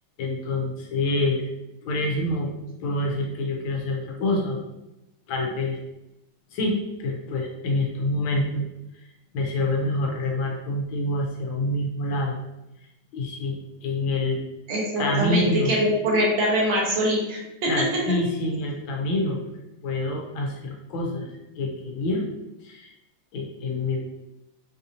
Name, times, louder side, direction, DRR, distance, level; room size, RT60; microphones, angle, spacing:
voice 1, 0.2-1.5 1.8-2.5 2.8-4.6 5.3-5.8 6.5-8.7 8.9-12.4 13.1-14.4 15.0-15.8 17.6-19.4 19.8-21.3 21.6-22.2 22.6-22.9 23.3-24.0, left 2 dB, 75° left, 0 dB, 1.5 m, -27 dB
voice 2, 14.7-17.8, equal, 80° right, -4 dB, 1.9 m, -23 dB
4.7 x 2.6 x 2.8 m, 0.94 s
omnidirectional pair, 2.2 m